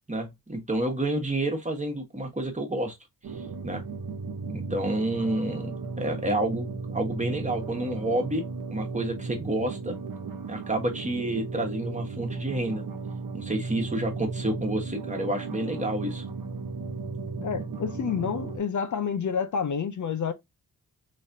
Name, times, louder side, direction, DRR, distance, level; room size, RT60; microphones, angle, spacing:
voice 1, 0.1-3.0 3.6-3.8 4.5-8.4 8.7-10.0 10.5-12.8 13.3-16.2, right 1 dB, 20° right, 1.4 m, -29 dB
sound 1, 3.2-18.6, right 4 dB, 65° right, 1.0 m, -35 dB
voice 2, 17.4-20.3, left 6 dB, 55° left, 0.6 m, -29 dB
4.1 x 3.2 x 2.7 m
cardioid pair, 85°, 36 cm